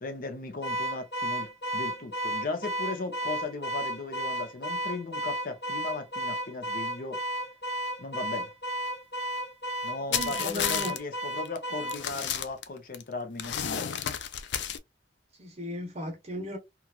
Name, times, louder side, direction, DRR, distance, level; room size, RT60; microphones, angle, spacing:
voice 1, 0.0-7.2 8.0-8.5 9.8-13.9, left 3 dB, 55° left, 0.7 m, -37 dB
Car / Alarm, 0.6-12.0, right 1 dB, 70° left, 1.4 m, -33 dB
sound 1, 10.1-11.0 11.4-11.6 11.9-13.0 13.4-14.8, left 9 dB, 85° left, 0.4 m, -31 dB
voice 2, 10.1-10.9 15.4-16.6, left 1 dB, 35° right, 0.8 m, -36 dB
3.0 x 2.4 x 2.3 m
head